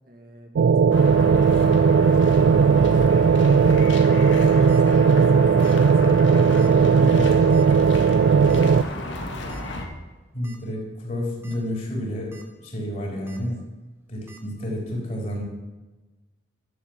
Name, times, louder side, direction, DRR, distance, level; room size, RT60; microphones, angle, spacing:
voice 1, 0.1-2.1 4.7-9.6 13.3-13.4, equal, 50° right, 3 dB, 2.0 m, -44 dB
sound 1, 0.6-8.8, right 6 dB, 70° right, 0.3 m, -17 dB
sound 2, 0.9-9.9, left 1 dB, 85° left, 1.8 m, -32 dB
sound 3, 4.7-4.8 5.6-5.9 6.1-6.2 6.6-6.7 7.5-7.8 8.5-8.6 9.5-9.6 10.1-10.2 10.4-10.6 11.2-11.6 12.0-12.4 13.3-13.4 14.3-14.4, right 5 dB, 15° right, 1.3 m, -49 dB
voice 2, 6.8-7.3 10.3-12.4 12.6-13.6 14.1-15.4, left 1 dB, 40° left, -2 dB, 3.6 m, -30 dB
12.0 x 7.1 x 7.3 m, 1.2 s
head